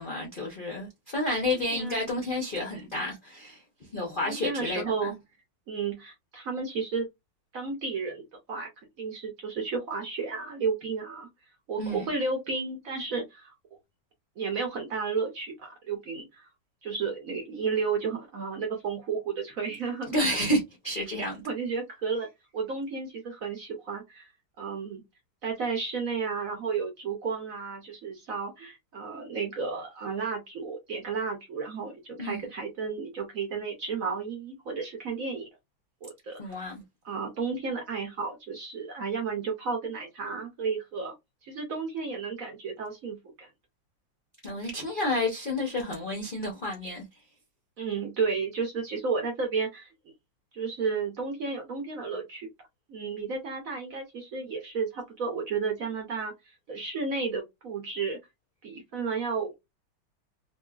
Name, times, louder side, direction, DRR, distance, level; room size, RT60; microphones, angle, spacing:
voice 1, 0.0-3.6 3.9-5.1 11.8-12.0 20.1-21.4 32.2-32.4 36.4-36.8 44.4-47.0, left 1 dB, 55° left, 0.5 m, -30 dB
voice 2, 1.7-2.1 4.2-5.1 5.7-7.1 7.5-8.7 9.0-11.3 11.7-13.5 14.4-16.5 16.8-20.1 21.5-22.3 22.5-24.3 24.6-25.0 25.4-35.5 36.0-36.6 37.0-41.1 41.4-43.5 47.8-49.9 50.5-52.5 52.9-58.2 58.6-59.5, right 5 dB, 60° right, 0.9 m, -32 dB
3.0 x 2.7 x 2.3 m
omnidirectional pair, 2.1 m